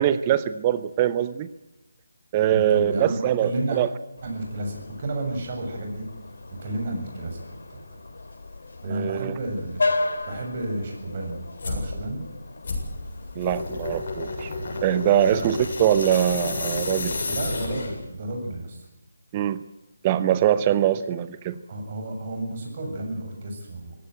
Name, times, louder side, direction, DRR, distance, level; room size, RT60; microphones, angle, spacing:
voice 1, 0.0-1.5 2.3-3.9 8.9-9.3 13.4-14.5 14.8-17.2 19.3-19.6 20.0-21.6, right 11 dB, 25° right, 14 dB, 0.8 m, -23 dB
voice 2, 2.5-3.8 4.2-6.1 6.5-8.0 8.8-12.2 15.0-15.5 17.3-18.9 21.7-24.0, right 2 dB, 40° right, 2 dB, 7.4 m, -32 dB
sound 1, 4.2-13.6, left 2 dB, 65° left, 2.7 m, -34 dB
sound 2, 11.6-11.9 12.6-18.1, left 3 dB, 50° left, 7.5 m, -30 dB
22.0 x 17.0 x 9.2 m, 0.94 s
figure-of-eight pair, 155°, 0 cm